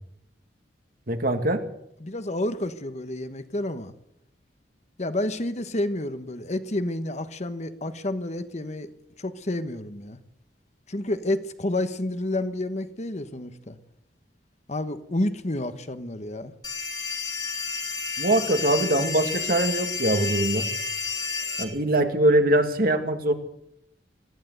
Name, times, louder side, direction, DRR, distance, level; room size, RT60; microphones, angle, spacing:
voice 1, 1.1-1.6 18.2-20.7 21.6-23.3, right 1 dB, 55° right, 6 dB, 2.3 m, -22 dB
voice 2, 2.0-3.9 5.0-8.9 9.2-10.2 10.9-13.8 14.7-16.5, left 1 dB, 40° left, 10 dB, 1.3 m, -30 dB
sound 1, 16.6-21.6, left 5 dB, 20° left, 3.4 m, -30 dB
22.0 x 15.0 x 8.1 m, 0.77 s
head